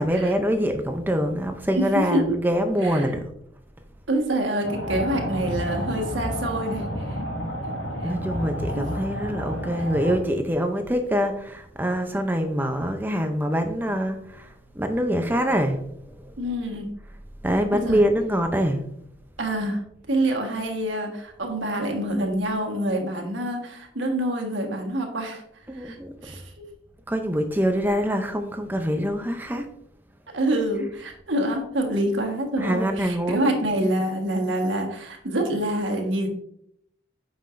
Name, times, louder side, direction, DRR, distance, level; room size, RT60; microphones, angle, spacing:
voice 1, 0.0-3.2 8.0-14.5 14.8-15.8 17.4-18.8 25.7-26.1 27.1-29.7 32.6-33.5, equal, 10° right, 6 dB, 0.5 m, -24 dB
voice 2, 1.7-2.3 2.8-3.1 4.1-7.2 8.7-8.8 9.8-9.9 16.4-16.9 17.7-18.0 19.4-19.8 20.1-25.4 25.7-26.0 26.2-26.4 30.3-36.3, right 1 dB, 70° right, 2 dB, 1.5 m, -26 dB
sound 1, 4.6-10.2, equal, 65° left, 2.3 m, -30 dB
8.6 x 5.6 x 2.5 m, 0.71 s
head